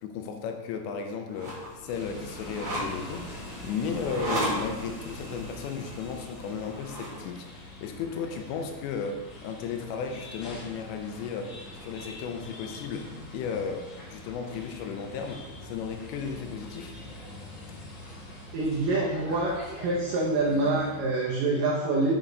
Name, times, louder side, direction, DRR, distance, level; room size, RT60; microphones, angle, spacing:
voice 1, 0.0-3.3 3.6-17.0, left 6 dB, 80° left, 5 dB, 2.8 m, -35 dB
sound 1, 1.3-7.2, equal, 30° right, 3.0 m, -36 dB
sound 2, 1.9-21.0, left 2 dB, 55° left, 1.4 m, -44 dB
voice 2, 18.5-19.5 19.8-22.2, right 2 dB, 85° right, -4 dB, 1.9 m, -26 dB
7.4 x 7.0 x 3.9 m, 1.2 s
omnidirectional pair, 5.3 m